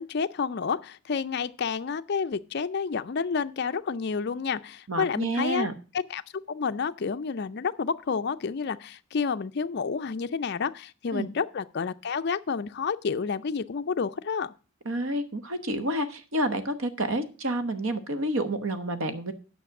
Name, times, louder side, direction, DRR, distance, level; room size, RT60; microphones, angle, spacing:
voice 1, 0.0-5.7 5.9-6.2 6.5-14.5, left 5 dB, 45° left, 0.4 m, -30 dB
voice 2, 4.9-5.7 11.1-11.3 14.9-19.3, right 1 dB, 65° right, 1.0 m, -29 dB
9.4 x 5.9 x 5.9 m
head